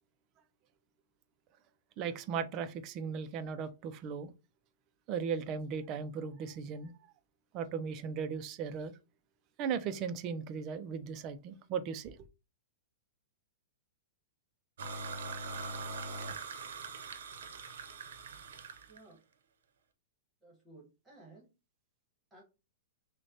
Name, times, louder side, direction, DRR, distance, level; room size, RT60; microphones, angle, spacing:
voice 1, 2.0-4.3 5.1-6.9 7.5-8.9 9.6-12.2, right 6 dB, 25° right, 0.3 m, -37 dB
sound 1, 14.8-19.0, right 3 dB, 80° right, 0.7 m, -42 dB
voice 2, 18.9-19.2 20.4-21.5 22.3-22.4, right 2 dB, 10° right, 1.2 m, -56 dB
6.2 x 2.1 x 2.7 m
supercardioid pair, 170°, 0 cm